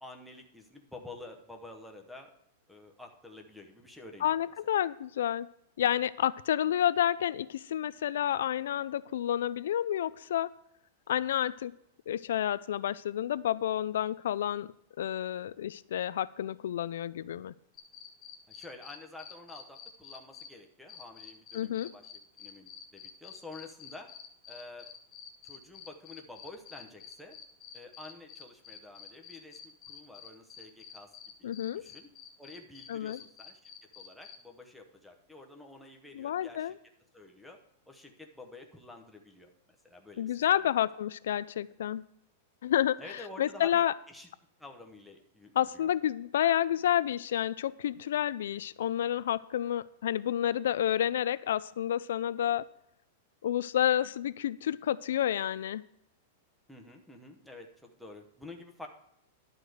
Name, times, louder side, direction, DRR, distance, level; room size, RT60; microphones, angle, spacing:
voice 1, 0.0-2.3 2.7-4.4 18.5-24.1 24.5-24.9 25.4-27.4 27.7-31.1 31.4-32.1 32.4-36.7 37.1-37.6 37.9-39.5 39.8-40.6 43.0-44.3 44.6-45.9 56.7-58.9, left 2 dB, ahead, 0 dB, 0.8 m, -49 dB
voice 2, 4.2-5.5 5.8-10.5 11.1-11.7 12.1-14.7 15.0-17.5 21.5-21.9 31.4-31.8 32.9-33.2 36.1-36.7 40.2-42.0 42.6-43.9 45.6-52.7 53.4-55.8, left 11 dB, 70° left, 16 dB, 0.3 m, -30 dB
sound 1, 17.7-20.5 20.9-34.3, left 8 dB, 20° left, 1.4 m, -48 dB
11.0 x 4.9 x 7.8 m, 0.77 s
supercardioid pair, 180°, 0 cm